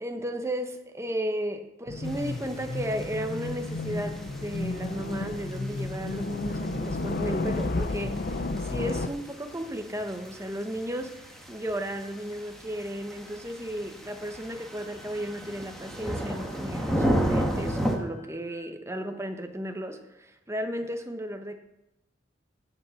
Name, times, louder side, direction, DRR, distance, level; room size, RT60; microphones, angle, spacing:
voice 1, 0.0-21.6, equal, 15° right, 6 dB, 1.1 m, -34 dB
sound 1, 1.9-9.1, left 2 dB, 50° left, 0.7 m, -32 dB
sound 2, 2.0-18.0, equal, ahead, 1.6 m, -35 dB
Wind instrument woodwind instrument, 14.7-18.7, right 2 dB, 40° right, 4.1 m, -56 dB
16.0 x 6.7 x 5.8 m, 0.93 s
head